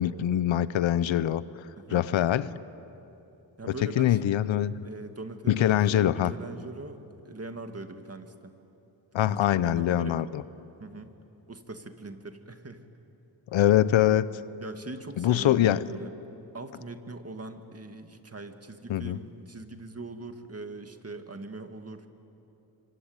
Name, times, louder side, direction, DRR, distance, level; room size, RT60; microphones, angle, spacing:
voice 1, 0.0-1.4 1.9-2.5 3.8-4.7 5.5-6.3 9.1-10.4 13.5-14.3 15.2-15.8 18.9-19.2, left 12 dB, 85° left, 16 dB, 0.8 m, -23 dB
voice 2, 1.8-2.1 3.6-4.4 4.8-7.0 7.2-8.5 9.2-10.2 10.8-11.1 11.5-12.8 14.6-16.1 16.5-22.1, right 3 dB, 30° right, 6 dB, 2.3 m, -41 dB
26.0 x 25.0 x 9.0 m, 2.9 s
cardioid pair, 60°, 45 cm